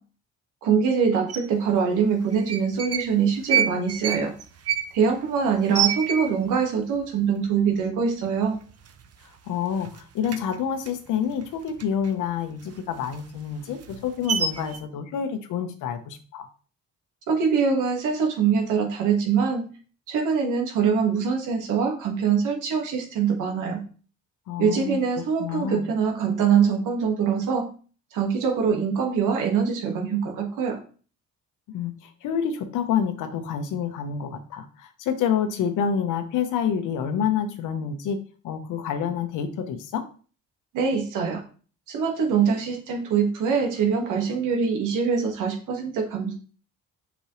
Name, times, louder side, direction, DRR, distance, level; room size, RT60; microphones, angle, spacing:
voice 1, 0.6-4.3 4.9-8.6 17.3-19.7 20.1-23.8 24.6-27.7 28.1-30.8 40.7-41.4 41.9-46.3, right 6 dB, 90° right, 3 dB, 1.8 m, -23 dB
sound 1, 1.3-1.4 2.3-3.1 3.4-6.6 7.0-7.1 7.3-7.8 8.2-8.4 8.7-9.5 9.8-12.1 12.5-14.8, right 9 dB, 55° right, 0.9 m, -28 dB
voice 2, 9.5-16.5 24.5-25.9 31.7-38.2 38.4-40.0, left 7 dB, 90° left, 8 dB, 1.1 m, -28 dB
7.0 x 5.3 x 3.2 m, 0.39 s
cardioid pair, 90°, 30 cm